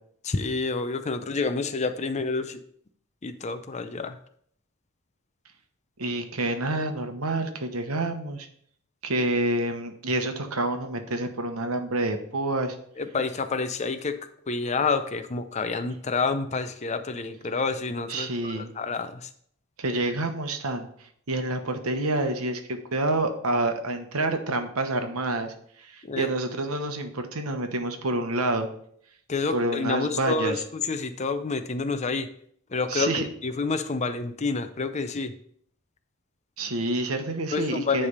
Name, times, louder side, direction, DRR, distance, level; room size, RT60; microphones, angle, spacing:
voice 1, 0.2-2.6 3.2-4.2 13.0-14.2 14.5-19.3 26.1-26.3 29.3-32.3 32.7-35.3 37.5-38.1, left 4 dB, 30° left, 9 dB, 0.5 m, -28 dB
voice 2, 6.0-8.5 9.0-12.8 18.1-18.7 19.8-20.9 21.3-28.7 29.5-30.6 32.9-33.3 36.6-38.1, right 2 dB, 85° right, 6 dB, 1.0 m, -28 dB
9.8 x 3.4 x 5.2 m, 0.65 s
head